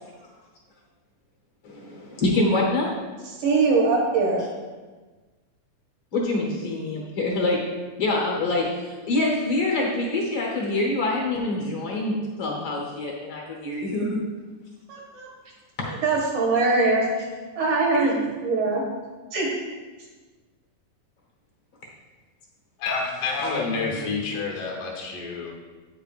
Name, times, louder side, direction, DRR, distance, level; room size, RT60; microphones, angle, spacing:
voice 1, 1.6-3.0 6.1-7.7 8.0-14.2 15.8-15.9 21.8-21.9 22.9-23.0 23.4-24.0, left 2 dB, 60° left, -2 dB, 1.4 m, -26 dB
voice 2, 3.2-4.4 14.9-15.3 15.8-17.3 17.6-18.8 19.3-19.5, right 3 dB, 75° right, -3 dB, 2.5 m, -22 dB
voice 3, 22.8-25.5, left 4 dB, 80° left, -1 dB, 2.8 m, -29 dB
9.0 x 6.9 x 2.5 m, 1.3 s
omnidirectional pair, 3.7 m